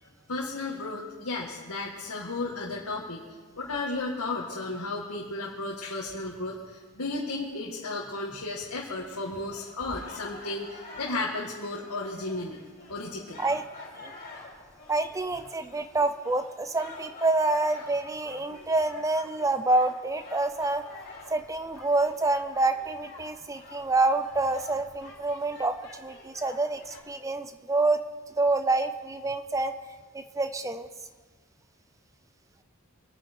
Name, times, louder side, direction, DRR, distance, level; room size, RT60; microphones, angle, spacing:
voice 1, 0.0-3.2 3.6-12.6 12.9-13.4, left 2 dB, 85° left, -4 dB, 1.9 m, -34 dB
sound 1, 9.0-27.0, left 3 dB, 45° left, 4.4 m, -48 dB
voice 2, 14.9-28.0 28.4-29.7 30.1-30.9, right 2 dB, 15° right, 10 dB, 0.5 m, -27 dB
24.5 x 9.5 x 4.6 m, 1.4 s
head